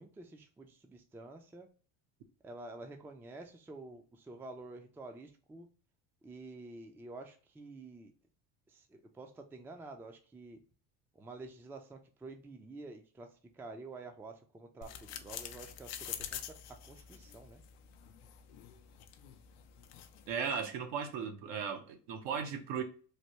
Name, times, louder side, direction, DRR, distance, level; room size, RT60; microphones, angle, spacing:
voice 1, 0.0-1.7 2.4-5.7 6.2-8.1 8.7-10.6 11.1-17.6, right 2 dB, 5° right, 0.3 m, -49 dB
sound 1, 14.8-20.3, left 10 dB, 90° left, 0.5 m, -47 dB
voice 2, 20.3-22.8, right 6 dB, 70° right, 0.8 m, -36 dB
3.3 x 2.2 x 2.8 m
supercardioid pair, 80°, 45 cm